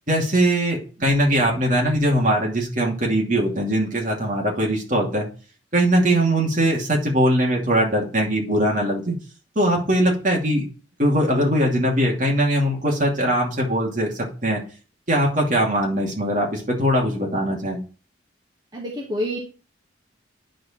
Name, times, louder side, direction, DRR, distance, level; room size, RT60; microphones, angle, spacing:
voice 1, 0.1-5.3 5.7-9.2 9.6-10.6 11.0-14.6 15.1-17.8, right 1 dB, 40° right, -1 dB, 2.6 m, -21 dB
voice 2, 18.7-19.4, equal, 20° right, -3 dB, 1.7 m, -28 dB
10.0 x 4.7 x 4.4 m, 0.37 s
head